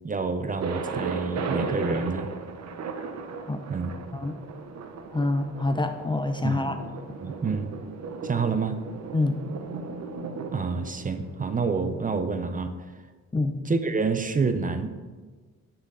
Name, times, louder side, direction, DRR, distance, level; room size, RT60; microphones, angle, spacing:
voice 1, 0.0-2.3 3.7-3.9 6.4-6.6 7.2-7.7 8.2-8.8 10.5-12.7 13.7-14.9, right 4 dB, 25° right, 9 dB, 0.7 m, -28 dB
Thunder, 0.6-12.4, right 4 dB, 60° right, 1.0 m, -36 dB
voice 2, 5.1-6.8 9.1-9.4 13.3-13.6, left 2 dB, 15° left, 7 dB, 0.6 m, -26 dB
9.5 x 5.9 x 3.9 m, 1.4 s
cardioid pair, 90°, 30 cm